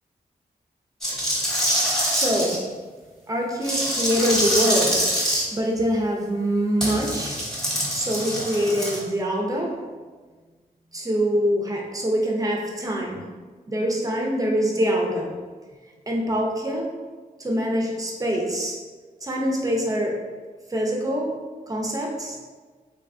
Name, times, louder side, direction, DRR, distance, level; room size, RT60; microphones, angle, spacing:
sound 1, 1.0-2.6 3.6-5.4 6.8-9.0, equal, 5° left, 1.0 m, -24 dB
voice 1, 2.1-2.6 3.3-5.0 5.5-7.4 7.9-9.7 10.9-13.3 13.7-15.3 16.1-16.9 17.4-18.8 19.2-20.2 20.7-21.3 21.7-22.4, equal, 20° right, 0 dB, 0.5 m, -24 dB
3.3 x 2.2 x 2.4 m, 1.4 s
cardioid pair, 70°, 16 cm